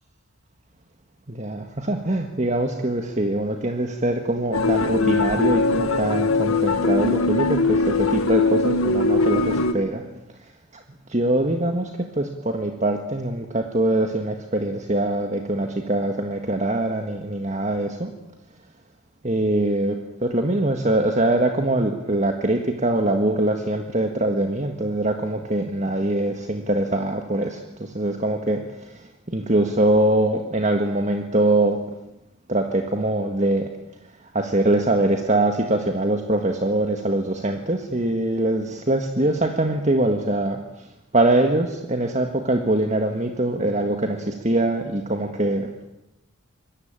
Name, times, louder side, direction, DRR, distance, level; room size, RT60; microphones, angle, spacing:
voice 1, 1.3-10.0 10.7-10.8 11.1-18.1 19.2-31.8 32.5-33.7 34.2-40.9 41.1-45.7, right 1 dB, 30° right, 5 dB, 1.7 m, -23 dB
sound 1, 4.5-9.7, left 3 dB, 75° left, 1.9 m, -21 dB
26.0 x 22.0 x 9.0 m, 0.94 s
head